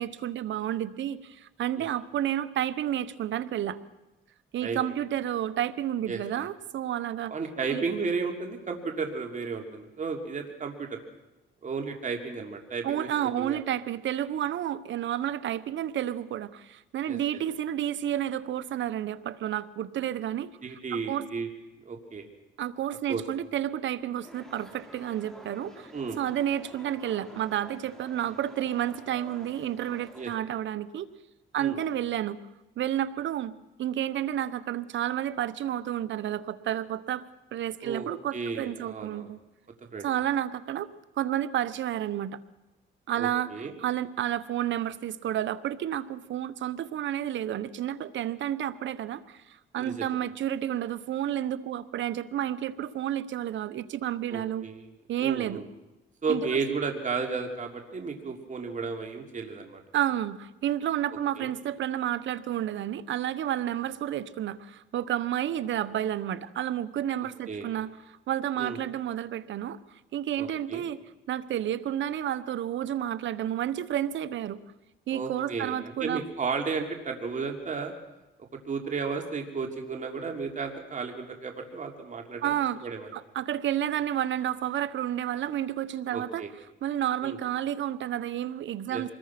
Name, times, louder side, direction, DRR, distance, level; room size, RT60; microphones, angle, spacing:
voice 1, 0.0-3.8 4.5-7.3 7.7-7.8 12.8-20.5 20.9-21.3 22.6-25.9 26.2-31.1 31.5-32.4 32.8-33.5 33.8-37.2 37.5-39.4 40.0-40.9 41.2-42.4 43.1-54.7 55.1-55.6 56.3-56.6 59.9-69.8 70.1-71.0 71.3-74.6 75.1-76.2 82.4-86.4 86.8-89.1, right 11 dB, 70° right, 14 dB, 1.1 m, -31 dB
voice 2, 7.3-11.0 11.6-13.6 17.1-17.2 20.6-21.5 21.8-22.3 23.1-23.2 25.9-26.2 30.1-30.3 31.6-31.8 37.8-39.3 39.9-40.1 43.2-43.7 49.8-50.0 54.3-54.9 55.2-55.7 56.2-59.8 61.4-61.5 67.5-67.7 68.6-68.8 70.4-70.9 75.1-77.9 78.6-82.5 82.8-83.1 86.1-86.5 87.2-87.4 88.9-89.0, right 5 dB, 40° right, 3 dB, 3.1 m, -33 dB
sound 1, 24.2-30.3, equal, 5° left, 4.8 m, -50 dB
25.0 x 21.0 x 6.0 m, 1.0 s
cardioid pair, 90°, 20 cm